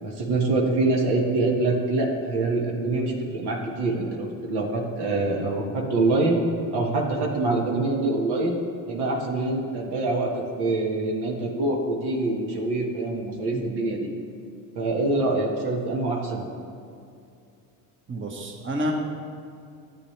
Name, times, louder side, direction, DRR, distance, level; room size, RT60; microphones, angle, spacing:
voice 1, 0.0-6.4 6.7-8.6 8.9-14.1 14.7-16.5, right 2 dB, 65° right, -1 dB, 1.7 m, -25 dB
voice 2, 13.2-13.7 18.1-18.9, equal, 30° right, 0 dB, 1.4 m, -30 dB
12.5 x 8.5 x 3.3 m, 2.5 s
supercardioid pair, 75°, 42 cm